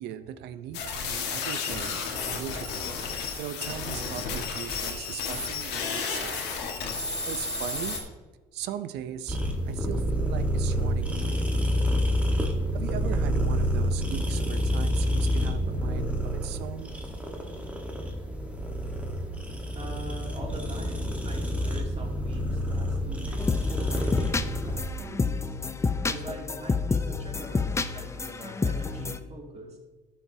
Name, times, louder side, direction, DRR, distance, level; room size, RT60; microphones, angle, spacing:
voice 1, 0.0-3.0 3.4-6.4 7.3-8.0 8.5-9.4 9.6-11.8 12.7-16.9 19.3-19.7, right 10 dB, 80° right, 12 dB, 0.7 m, -39 dB
sound 1, 0.7-8.0, left 5 dB, 85° left, 1.6 m, -32 dB
sound 2, 9.3-24.8, equal, 10° right, 1.4 m, -28 dB
voice 2, 19.7-29.8, right 1 dB, 40° right, -1 dB, 2.7 m, -43 dB
sound 3, 23.4-29.2, left 4 dB, 15° left, 0.5 m, -29 dB
13.0 x 7.2 x 2.8 m, 1.3 s
cardioid pair, 110°, 17 cm